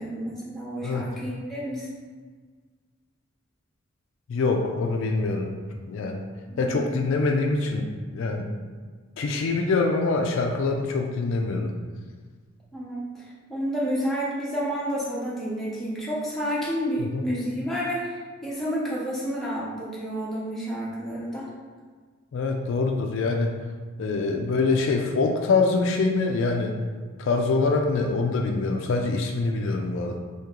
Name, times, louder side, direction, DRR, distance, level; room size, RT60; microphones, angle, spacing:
voice 1, 0.0-1.9 6.5-7.0 12.7-18.1 18.4-21.5, equal, ahead, -8 dB, 0.7 m, -30 dB
voice 2, 4.3-5.5 5.9-6.3 6.6-8.5 9.2-11.7 17.0-17.3 22.3-23.6 24.0-26.8 27.2-30.2, left 3 dB, 60° left, 2 dB, 0.3 m, -24 dB
2.9 x 2.8 x 3.6 m, 1.5 s
head